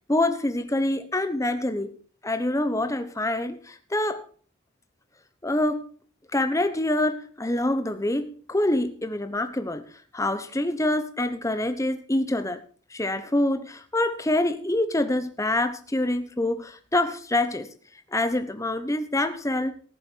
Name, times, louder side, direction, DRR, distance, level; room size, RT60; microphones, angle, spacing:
voice 1, 0.1-1.9 2.2-4.2 5.4-5.8 6.3-9.8 10.1-12.6 12.9-17.7 18.1-19.7, left 1 dB, 15° left, 9 dB, 1.0 m, -26 dB
19.0 x 7.4 x 4.6 m, 0.43 s
head